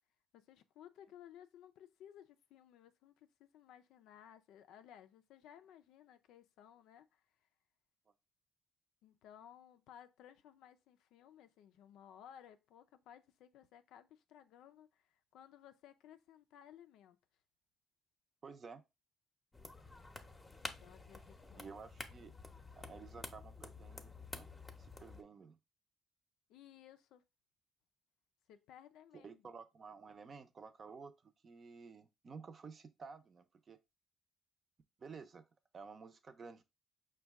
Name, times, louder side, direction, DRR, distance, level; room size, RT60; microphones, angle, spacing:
voice 1, 0.3-7.2 9.0-17.2 20.8-21.7 26.5-27.2 28.5-29.4, left 10 dB, 90° left, 0.4 m, -59 dB
voice 2, 18.4-18.8 21.5-22.4 22.7-24.5 24.8-25.6 29.1-33.8 35.0-35.5 35.7-36.6, right 5 dB, 45° right, 0.5 m, -53 dB
sound 1, 19.5-25.2, left 2 dB, 20° left, 0.7 m, -50 dB
5.2 x 2.2 x 3.4 m
cardioid pair, 90°, 0 cm